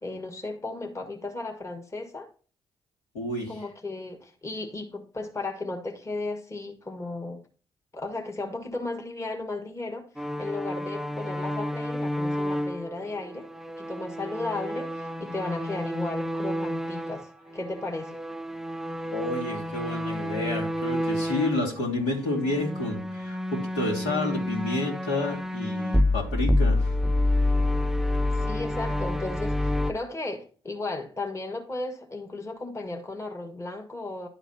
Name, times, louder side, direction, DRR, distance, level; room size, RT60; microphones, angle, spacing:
voice 1, 0.0-2.3 3.5-7.4 7.9-10.1 10.4-13.5 13.8-18.2 28.3-34.3, left 2 dB, 25° left, 1.8 m, -35 dB
voice 2, 3.1-3.6 19.1-26.9, left 2 dB, 75° left, 2.6 m, -30 dB
sound 1, 10.2-17.3 17.6-21.7 22.3-29.9, left 1 dB, 5° right, 0.5 m, -28 dB
11.5 x 4.0 x 4.1 m
hypercardioid pair, 45°, 12 cm